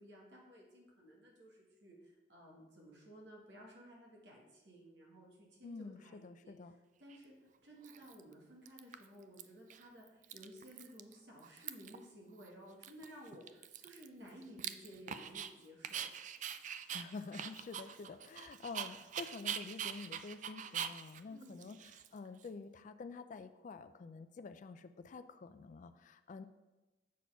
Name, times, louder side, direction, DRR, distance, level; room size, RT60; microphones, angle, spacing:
voice 1, 0.0-16.1 21.3-21.7, equal, 70° right, -1 dB, 1.7 m, -56 dB
voice 2, 5.6-6.7 16.9-21.8 22.1-26.4, left 4 dB, 45° left, 10 dB, 0.3 m, -48 dB
Dog, 7.1-7.2 7.8-8.3 8.7-9.4 9.7-9.8 10.1-11.1 11.4-12.0 12.4-12.5 12.8-15.5 15.8-22.5, right 8 dB, 40° right, 0.3 m, -44 dB
7.3 x 4.3 x 5.5 m, 1.1 s
head